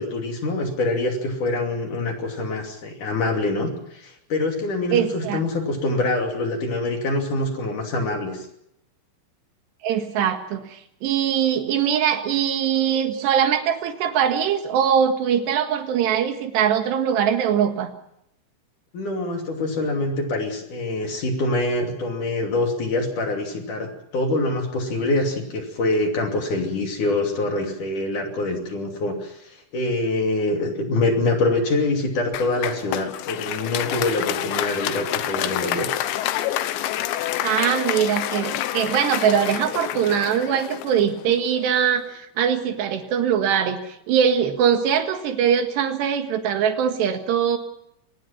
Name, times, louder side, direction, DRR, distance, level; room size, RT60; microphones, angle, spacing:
voice 1, 0.0-8.5 18.9-35.9, left 2 dB, 45° left, 3 dB, 3.7 m, -25 dB
voice 2, 4.9-5.4 9.8-17.9 37.4-47.6, right 8 dB, 65° right, 7 dB, 3.5 m, -22 dB
Applause, 32.3-41.7, left 13 dB, 75° left, 3.0 m, -28 dB
24.5 x 19.5 x 5.9 m, 0.75 s
omnidirectional pair, 5.8 m